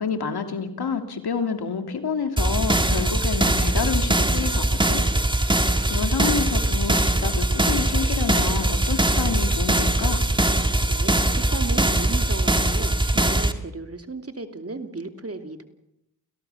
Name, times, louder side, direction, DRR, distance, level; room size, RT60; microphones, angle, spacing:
voice 1, 0.0-5.0 5.4-5.6 5.9-10.3, left 6 dB, 85° left, 6 dB, 2.8 m, -29 dB
sound 1, 2.4-13.5, right 1 dB, 10° right, 2.1 m, -21 dB
voice 2, 10.9-15.6, right 3 dB, 40° right, 7 dB, 2.7 m, -35 dB
29.5 x 17.0 x 7.1 m, 0.82 s
cardioid pair, 55°, 38 cm